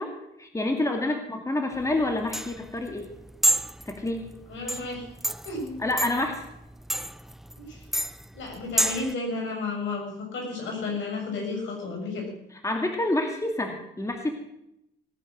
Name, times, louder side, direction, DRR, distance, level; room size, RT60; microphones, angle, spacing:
voice 1, 0.0-3.1 3.9-4.3 5.8-6.4 12.6-14.3, left 2 dB, 15° left, 4 dB, 2.3 m, -28 dB
sound 1, 1.7-9.1, equal, ahead, 0.5 m, -30 dB
voice 2, 4.5-5.1 5.5-5.8 7.6-7.8 8.3-12.3, left 3 dB, 70° left, 0 dB, 7.1 m, -32 dB
18.5 x 10.0 x 6.4 m, 0.81 s
cardioid pair, 90°, 20 cm